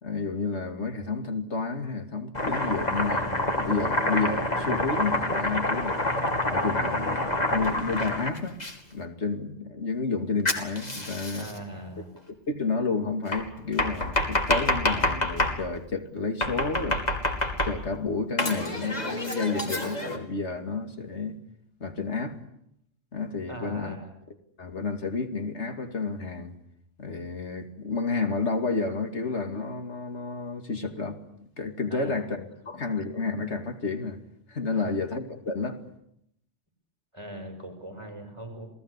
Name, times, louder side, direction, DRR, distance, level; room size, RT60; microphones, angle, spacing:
voice 1, 0.0-6.0 6.5-8.6 8.9-11.5 12.5-17.0 17.6-21.4 21.8-22.4 23.1-23.9 24.6-26.5 27.0-31.2 31.6-34.2 34.5-35.8, left 4 dB, 75° left, 2.8 m, -30 dB
Domestic sounds home sounds, 2.3-8.7 10.5-11.6 13.3-15.6 16.4-18.0 18.4-20.2, left 1 dB, 35° left, 2.9 m, -27 dB
voice 2, 11.4-12.1 23.5-24.1 31.9-32.3 34.7-34.9 37.1-38.7, right 1 dB, 25° right, 6.1 m, -40 dB
29.0 x 19.0 x 8.3 m
omnidirectional pair, 1.2 m